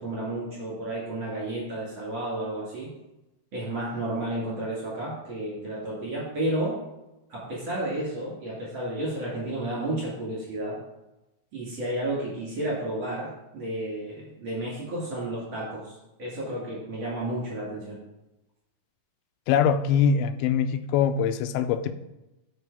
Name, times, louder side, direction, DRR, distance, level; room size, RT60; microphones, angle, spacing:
voice 1, 0.0-2.9 3.5-6.8 7.3-10.8 11.5-18.0, right 1 dB, 40° right, -6 dB, 2.5 m, -32 dB
voice 2, 19.5-21.9, left 7 dB, 85° left, 11 dB, 2.4 m, -23 dB
8.0 x 5.2 x 4.7 m, 0.96 s
omnidirectional pair, 4.2 m